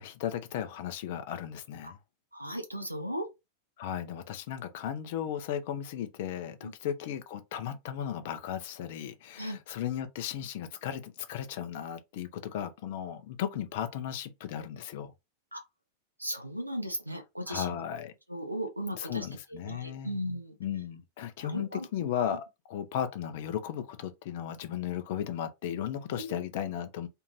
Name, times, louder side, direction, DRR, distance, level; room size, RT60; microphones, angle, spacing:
voice 1, 0.0-2.0 3.8-15.1 17.5-18.1 18.9-20.2 20.6-27.1, left 9 dB, 50° left, 0.5 m, -35 dB
voice 2, 2.3-3.3 6.6-6.7 9.4-9.6 15.5-15.6 16.2-17.8 18.3-19.3 19.5-20.6 21.4-21.9 26.1-26.3, equal, 85° right, 0.6 m, -36 dB
2.7 x 2.5 x 3.0 m
figure-of-eight pair, 90°, 0 cm